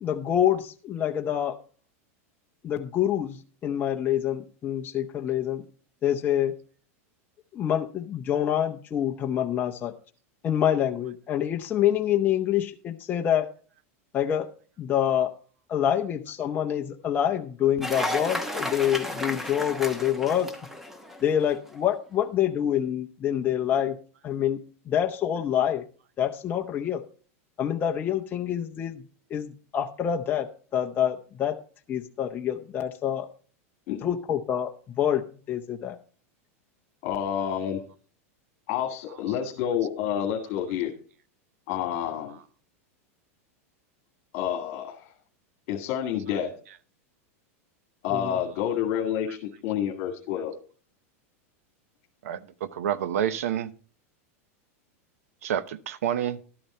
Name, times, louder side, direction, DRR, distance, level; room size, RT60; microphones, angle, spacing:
voice 1, 0.0-1.6 2.6-5.6 6.0-6.5 7.5-9.9 10.4-13.5 14.1-14.5 14.8-15.3 15.7-20.5 21.2-24.0 24.2-25.8 26.2-27.0 27.6-29.0 29.3-31.6 31.9-33.3 34.0-35.2 35.5-36.0 48.1-48.4, left 10 dB, 25° left, 0.7 m, -26 dB
Cheering / Applause, 17.8-21.5, left 1 dB, 5° right, 1.1 m, -33 dB
voice 2, 37.0-37.8 38.7-40.9 41.7-42.4 44.3-45.0 45.7-46.5 48.0-49.4 49.6-50.5, left 9 dB, 50° left, 2.0 m, -28 dB
voice 3, 52.2-53.7 55.4-56.4, right 10 dB, 85° right, 0.9 m, -28 dB
12.0 x 8.7 x 4.3 m
supercardioid pair, 145°, 8 cm